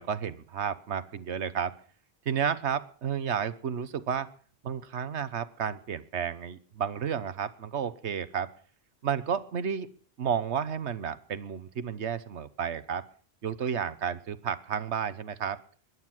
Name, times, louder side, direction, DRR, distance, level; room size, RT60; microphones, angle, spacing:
voice 1, 0.0-1.8 2.2-4.3 4.6-8.5 9.0-9.9 10.2-13.1 13.4-15.6, right 7 dB, 85° right, 15 dB, 1.3 m, -32 dB
21.0 x 11.5 x 6.0 m, 0.43 s
omnidirectional pair, 1.1 m